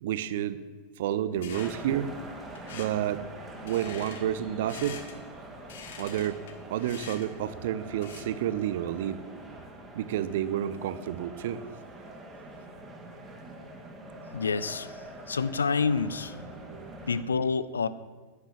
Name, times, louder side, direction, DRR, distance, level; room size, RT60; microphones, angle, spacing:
voice 1, 0.0-0.6 1.0-2.1 2.7-3.2 3.6-5.0 6.0-6.4 6.7-9.2 9.9-11.6 16.7-17.0, right 11 dB, 55° right, 14 dB, 0.7 m, -30 dB
sound 1, 1.3-8.4, left 6 dB, 55° left, 1.4 m, -47 dB
sound 2, 1.5-17.2, right 2 dB, 15° right, 2.4 m, -45 dB
voice 2, 14.3-14.9 15.3-16.4 17.1-17.9, left 5 dB, 70° left, 16 dB, 0.5 m, -28 dB
11.0 x 9.9 x 7.3 m, 1.4 s
figure-of-eight pair, 90°, 0 cm